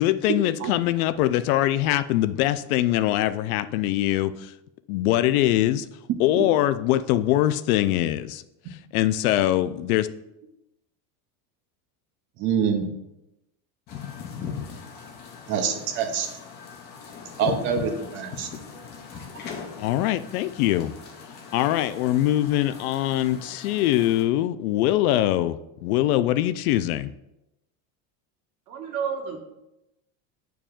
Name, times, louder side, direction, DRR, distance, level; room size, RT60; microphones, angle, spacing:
voice 1, 0.0-4.5 4.9-5.9 6.2-8.4 8.9-10.1 19.8-20.9 21.5-27.1, left 14 dB, 85° left, 13 dB, 0.5 m, -23 dB
voice 2, 12.4-12.9 15.5-16.3 17.4-18.5 18.7-18.8 19.1-19.3, right 7 dB, 30° right, 5 dB, 0.5 m, -26 dB
sound 1, 13.9-24.2, left 6 dB, 25° left, 0.5 m, -39 dB
voice 3, 28.7-29.4, right 6 dB, 80° right, 2 dB, 1.5 m, -30 dB
8.8 x 4.7 x 2.4 m, 0.89 s
cardioid pair, 180°, 42 cm